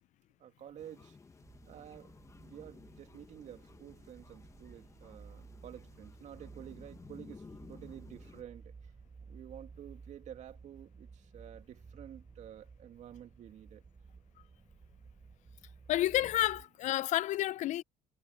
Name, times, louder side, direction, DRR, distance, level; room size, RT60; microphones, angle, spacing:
voice 1, 0.4-1.2 1.7-2.1 2.4-8.7 9.3-13.8, right 10 dB, 55° right, 2.3 m, -51 dB
sound 1, 0.8-8.4, left 4 dB, 20° left, 1.5 m, -55 dB
sound 2, 1.4-16.6, right 5 dB, 30° right, 7.3 m, -55 dB
voice 2, 15.9-17.8, left 14 dB, 55° left, 0.5 m, -30 dB
supercardioid pair, 95°, 14 cm